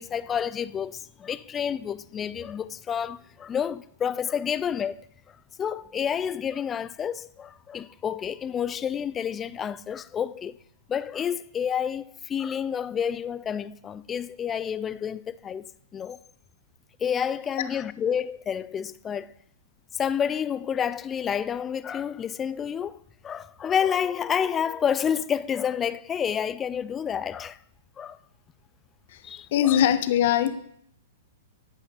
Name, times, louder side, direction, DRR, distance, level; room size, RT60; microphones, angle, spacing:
voice 1, 0.0-5.0 5.6-10.6 10.9-16.2 17.0-19.3 19.9-27.6 28.0-28.2 29.2-29.8, left 8 dB, 20° left, 0.4 m, -29 dB
voice 2, 29.1-30.5, left 10 dB, 55° left, 0.9 m, -22 dB
11.0 x 8.2 x 4.1 m
figure-of-eight pair, 105°, 0 cm